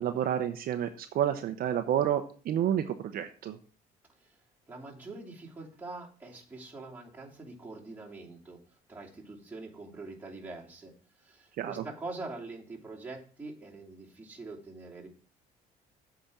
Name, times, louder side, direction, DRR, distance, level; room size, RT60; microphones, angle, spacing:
voice 1, 0.0-3.6 11.6-11.8, right 10 dB, 60° right, 8 dB, 0.8 m, -30 dB
voice 2, 4.7-8.6 8.9-10.9 11.2-15.1, right 3 dB, 10° right, -3 dB, 2.8 m, -44 dB
7.9 x 5.1 x 7.1 m, 0.41 s
cardioid pair, 110°, 17 cm